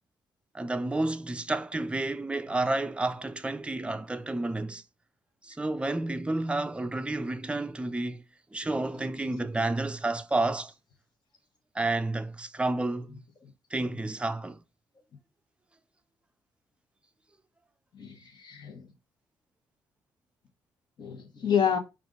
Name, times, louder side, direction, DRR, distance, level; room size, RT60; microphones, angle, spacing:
voice 1, 0.5-4.8 5.4-8.2 8.5-10.7 11.7-13.2 13.7-14.6, right 2 dB, 10° right, 0.5 m, -30 dB
voice 2, 17.9-18.9 21.0-21.8, left 8 dB, 55° left, 1.2 m, -29 dB
4.9 x 2.5 x 3.6 m
hypercardioid pair, 50°, 9 cm